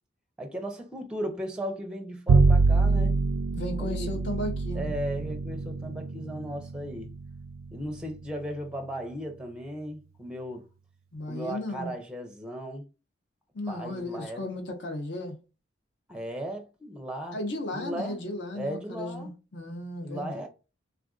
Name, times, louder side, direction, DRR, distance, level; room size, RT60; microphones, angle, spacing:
voice 1, 0.4-3.2 3.8-4.1 4.7-7.1 7.7-10.7 11.3-12.9 13.7-14.4 16.1-17.4 17.7-18.2 18.5-19.3 20.0-20.5, equal, 5° right, 0.5 m, -36 dB
Bowed string instrument, 2.3-8.7, right 3 dB, 85° right, 0.3 m, -26 dB
voice 2, 3.5-4.9 11.1-11.9 13.5-15.3 17.3-20.4, left 1 dB, 60° left, 0.7 m, -35 dB
3.4 x 2.4 x 2.3 m
head